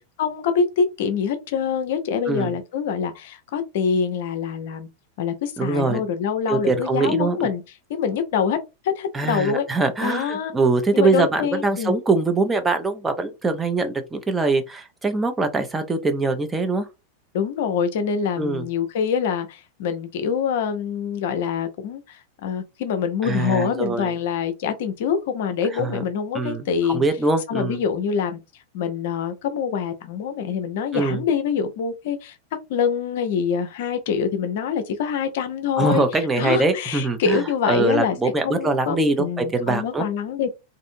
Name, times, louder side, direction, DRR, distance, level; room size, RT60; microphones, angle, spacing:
voice 1, 0.0-4.9 5.2-7.6 7.9-8.6 8.8-9.6 10.0-10.5 10.9-12.0 17.3-27.1 27.5-28.4 28.7-32.4 32.7-36.0 36.4-38.2 38.4-40.5, left 6 dB, 55° left, 0.5 m, -25 dB
voice 2, 5.6-6.0 6.5-7.4 9.1-16.9 18.4-18.7 23.2-24.1 25.7-26.0 26.3-26.6 26.9-27.8 30.9-31.2 35.8-37.4 37.7-40.0, right 3 dB, 15° right, 0.6 m, -23 dB
2.6 x 2.5 x 2.6 m
figure-of-eight pair, 90°, 0 cm